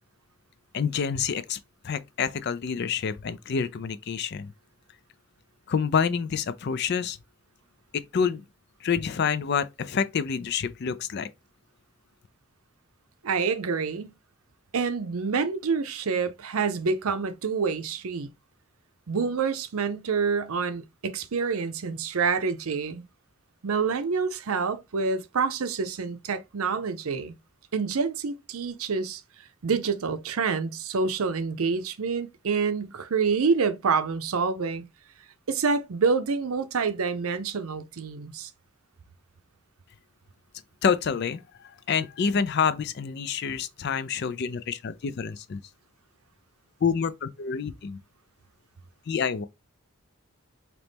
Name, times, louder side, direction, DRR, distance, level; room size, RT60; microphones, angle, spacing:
voice 1, 0.7-1.6 1.8-4.5 5.7-7.2 7.9-8.4 8.8-11.3 40.8-41.4 41.9-45.6 46.8-48.0 49.1-49.4, left 6 dB, 50° left, 0.3 m, -27 dB
voice 2, 13.2-14.1 14.7-18.3 19.1-23.0 23.6-27.3 27.7-29.2 29.6-34.8 35.5-38.5, right 5 dB, 75° right, 0.6 m, -27 dB
4.0 x 2.9 x 3.4 m
head